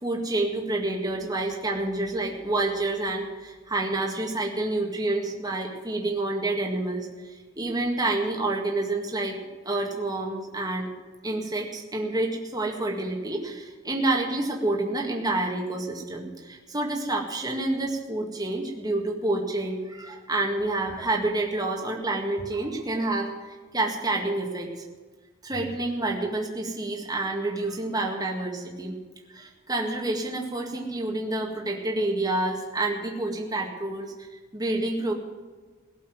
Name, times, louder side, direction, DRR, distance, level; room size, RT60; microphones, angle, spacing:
voice 1, 0.0-9.4 9.7-10.9 11.2-23.3 23.7-24.8 25.4-29.0 29.3-34.1 34.5-35.1, right 2 dB, 20° right, 0 dB, 1.9 m, -28 dB
17.5 x 7.2 x 9.4 m, 1.4 s
head